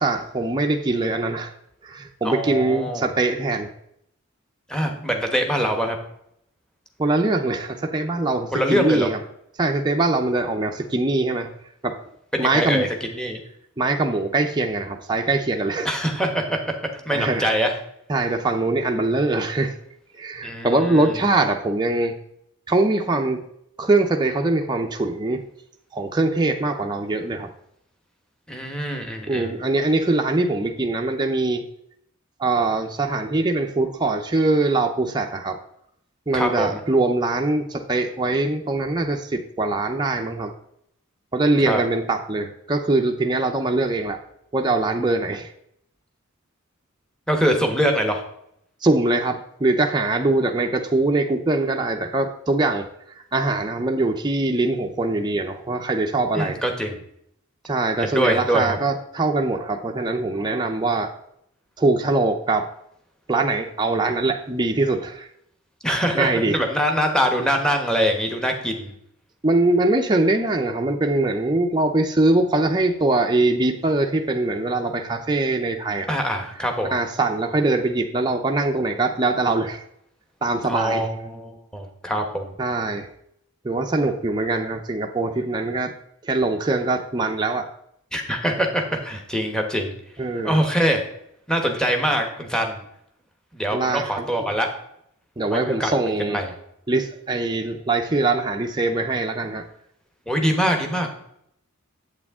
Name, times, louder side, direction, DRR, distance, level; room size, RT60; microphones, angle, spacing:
voice 1, 0.0-1.5 1.8-3.7 7.0-9.2 9.6-11.5 11.8-12.0 12.4-12.9 13.8-15.9 17.1-17.5 18.1-19.7 20.1-22.1 22.7-23.5 23.8-25.4 25.9-27.5 29.3-31.6 32.4-35.6 36.3-40.5 41.3-44.2 44.5-45.5 48.8-52.9 53.3-56.6 57.6-61.1 61.8-62.7 63.3-65.3 66.1-66.6 69.4-76.1 76.8-79.8 80.4-81.2 82.6-83.1 83.6-85.9 86.2-87.7 90.2-90.6 93.7-94.5 95.4-96.4 96.9-99.7, right 2 dB, 20° right, 2 dB, 0.6 m, -22 dB
voice 2, 2.2-3.0 4.7-6.0 8.5-9.1 12.3-12.9 13.1-13.4 15.8-16.6 17.0-17.7 20.4-21.1 28.5-29.5 36.3-36.8 41.7-41.8 47.3-48.2 56.3-57.0 58.0-58.8 65.8-68.9 76.1-76.9 80.7-82.5 88.1-89.9 90.4-91.0 91.5-92.8 93.5-94.7 95.5-96.5 100.3-101.1, equal, 5° left, 3 dB, 1.1 m, -23 dB
8.5 x 8.1 x 3.6 m, 0.73 s
head